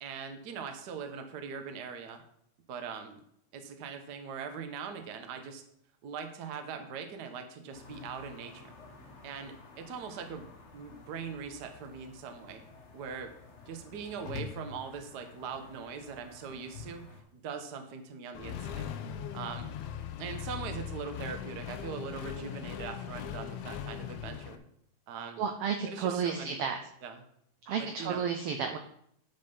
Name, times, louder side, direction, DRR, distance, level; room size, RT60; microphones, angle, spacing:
voice 1, 0.0-2.2 2.7-3.2 3.5-5.6 6.0-8.7 9.2-10.5 10.7-12.6 12.9-13.3 13.7-17.1 17.3-18.9 19.3-19.8 20.2-24.6 25.1-25.4 25.8-27.2 27.8-28.2, right 6 dB, 60° right, 6 dB, 1.1 m, -41 dB
sound 1, 7.7-17.2, left 4 dB, 60° left, 0.7 m, -49 dB
Accelerating revving vroom, 18.3-24.6, left 9 dB, 80° left, 2.0 m, -39 dB
voice 2, 25.4-26.8 27.7-28.8, right 6 dB, 80° right, 6 dB, 1.3 m, -32 dB
9.9 x 5.5 x 5.4 m, 0.70 s
omnidirectional pair, 3.4 m